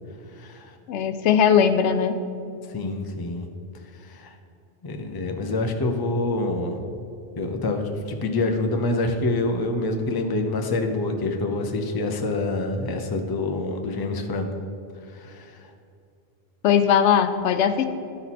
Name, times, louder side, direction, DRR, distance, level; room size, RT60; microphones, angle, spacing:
voice 1, 0.3-0.7 2.7-3.5 4.0-4.3 4.8-6.8 7.4-14.5 15.1-15.6, left 2 dB, 30° left, 4 dB, 0.5 m, -26 dB
voice 2, 0.9-2.2 16.6-17.9, left 8 dB, 90° left, 9 dB, 0.9 m, -19 dB
12.0 x 4.3 x 4.1 m, 2.5 s
omnidirectional pair, 1.1 m